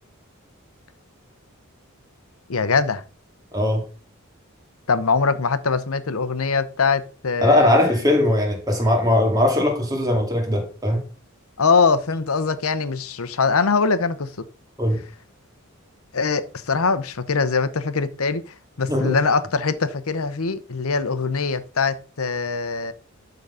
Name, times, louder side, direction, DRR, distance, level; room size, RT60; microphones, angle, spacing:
voice 1, 2.5-3.0 4.9-7.9 11.6-14.3 16.1-18.4 18.8-22.9, left 4 dB, 85° left, 0.9 m, -22 dB
voice 2, 3.5-3.8 7.4-11.0 14.8-15.0 18.9-19.2, left 1 dB, 20° right, 2.2 m, -19 dB
12.0 x 4.0 x 5.5 m
head